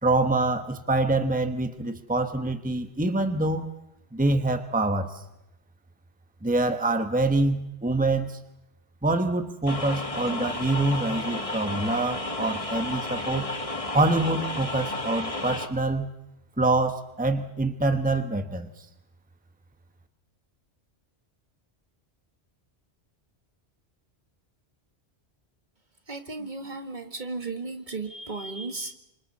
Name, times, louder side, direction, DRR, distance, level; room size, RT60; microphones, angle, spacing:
voice 1, 0.0-3.7 4.1-5.2 6.4-8.4 9.0-13.5 13.9-16.1 16.6-18.8, right 2 dB, 10° right, 7 dB, 1.3 m, -25 dB
sound 1, 9.7-15.7, left 2 dB, 30° left, 1.6 m, -32 dB
voice 2, 26.1-28.9, right 3 dB, 45° right, 6 dB, 2.0 m, -35 dB
29.0 x 27.0 x 4.3 m, 0.88 s
omnidirectional pair, 1.1 m